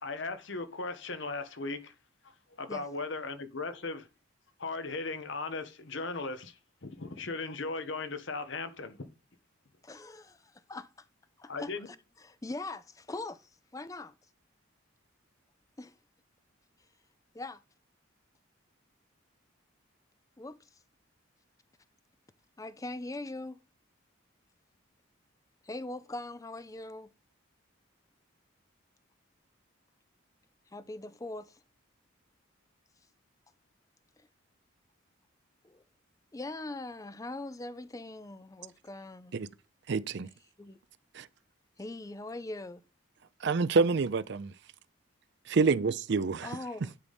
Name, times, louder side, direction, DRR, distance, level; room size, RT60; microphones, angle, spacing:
voice 1, 0.0-1.9 2.6-4.1 4.6-9.1 11.5-11.9, left 3 dB, 60° left, 1.0 m, -37 dB
voice 2, 9.8-11.1 11.4-14.1 15.8-15.9 17.3-17.6 20.4-20.8 22.6-23.6 25.6-27.1 30.7-31.6 34.2-34.3 35.6-35.8 36.3-39.3 40.6-40.8 41.8-42.8 46.4-46.9, left 2 dB, 15° left, 0.4 m, -41 dB
voice 3, 39.9-40.3 41.1-41.3 43.4-44.5 45.5-46.5, right 4 dB, 55° right, 0.4 m, -27 dB
9.9 x 4.0 x 3.4 m
head